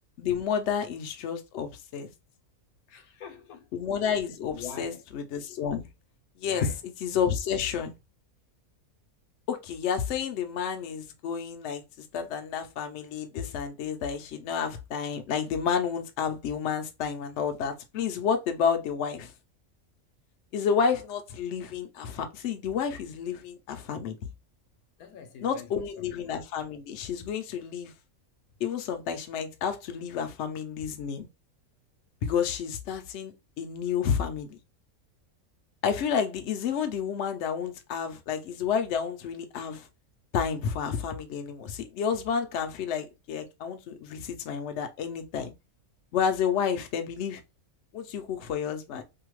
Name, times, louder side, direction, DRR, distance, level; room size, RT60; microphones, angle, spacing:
voice 1, 0.2-2.1 3.7-5.9 6.4-7.9 9.5-11.8 12.1-19.3 20.5-24.2 25.4-27.9 28.6-31.3 32.2-34.6 35.8-39.9 40.3-45.5 46.1-47.4 47.9-49.0, left 7 dB, 65° left, 0.8 m, -30 dB
voice 2, 2.9-3.7 4.5-5.0 6.4-6.8 25.0-26.1, left 7 dB, 80° left, 1.1 m, -44 dB
2.7 x 2.2 x 2.9 m
omnidirectional pair, 1.5 m